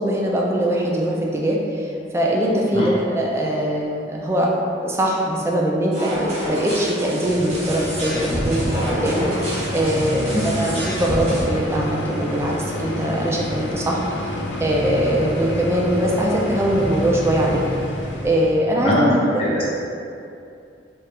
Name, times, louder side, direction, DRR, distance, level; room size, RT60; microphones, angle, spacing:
voice 1, 0.0-4.5 4.8-9.3 9.7-14.3 14.6-17.6 18.2-18.9 19.3-19.5, right 1 dB, 15° right, -3 dB, 0.3 m, -22 dB
sound 1, 5.9-11.4, equal, 35° right, 0.9 m, -28 dB
sound 2, 7.2-18.6, left 1 dB, 70° left, 0.5 m, -28 dB
voice 2, 18.8-19.1 19.4-19.6, equal, 30° left, -7 dB, 0.8 m, -20 dB
2.9 x 2.4 x 3.3 m, 2.5 s
head